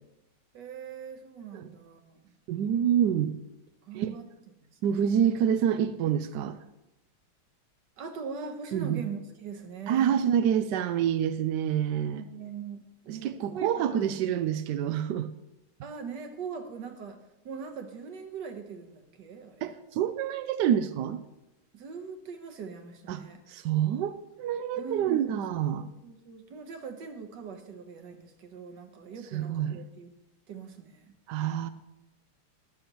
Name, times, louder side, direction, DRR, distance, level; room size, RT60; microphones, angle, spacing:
voice 1, 0.5-2.3 3.8-4.2 4.7-4.8 8.0-10.2 11.9-14.1 15.8-17.2 17.4-19.7 21.7-23.4 24.7-30.1 30.5-31.1, right 6 dB, 60° right, 7 dB, 1.6 m, -41 dB
voice 2, 2.5-3.4 3.9-4.1 4.8-6.6 8.7-9.0 9.9-12.2 13.1-15.3 19.6-21.2 23.1-25.9 29.3-29.8 31.3-31.7, right 9 dB, 80° right, 10 dB, 0.9 m, -27 dB
13.5 x 12.0 x 3.0 m, 0.95 s
omnidirectional pair, 2.3 m